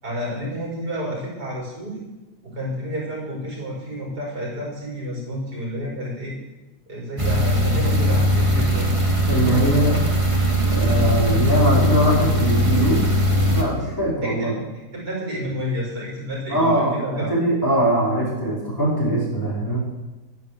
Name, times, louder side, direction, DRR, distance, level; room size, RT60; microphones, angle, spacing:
voice 1, 0.0-2.0 2.4-6.3 6.9-8.9 9.5-10.1 14.2-14.5 14.9-17.3, equal, 80° right, -3 dB, 6.1 m, -30 dB
sound 1, 7.2-13.6, equal, 20° right, 2.1 m, -20 dB
voice 2, 9.3-9.9 10.7-13.1 13.5-14.5 16.5-19.8, right 1 dB, 10° left, -7 dB, 5.6 m, -21 dB
13.5 x 11.0 x 8.1 m, 1.1 s
omnidirectional pair, 1.7 m